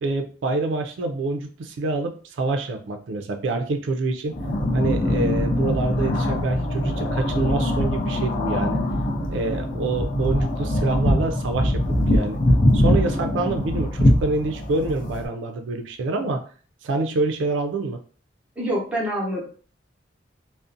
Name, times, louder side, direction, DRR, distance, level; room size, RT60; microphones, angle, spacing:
voice 1, 0.0-4.4 4.7-8.8 9.3-12.4 12.7-16.4 16.8-18.0, right 2 dB, 80° right, 5 dB, 0.4 m, -26 dB
sound 1, 4.3-15.3, left 1 dB, 45° left, 0.5 m, -22 dB
voice 2, 18.6-19.4, equal, 5° right, -4 dB, 0.7 m, -26 dB
2.5 x 2.0 x 2.5 m, 0.40 s
head